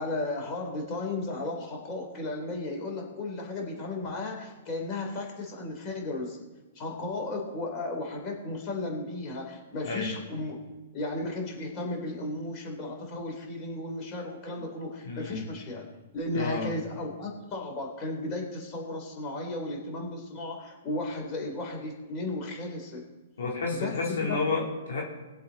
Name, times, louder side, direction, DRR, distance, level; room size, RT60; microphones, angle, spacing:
voice 1, 0.0-6.4 6.8-10.6 10.9-15.9 16.1-23.0 23.7-23.9 24.3-24.4, left 2 dB, 30° left, 0 dB, 3.7 m, -34 dB
voice 2, 15.0-15.4 16.3-16.7 23.4-25.0, left 4 dB, 80° left, -2 dB, 3.6 m, -31 dB
21.5 x 7.8 x 4.2 m, 1.2 s
hypercardioid pair, 135°, 0 cm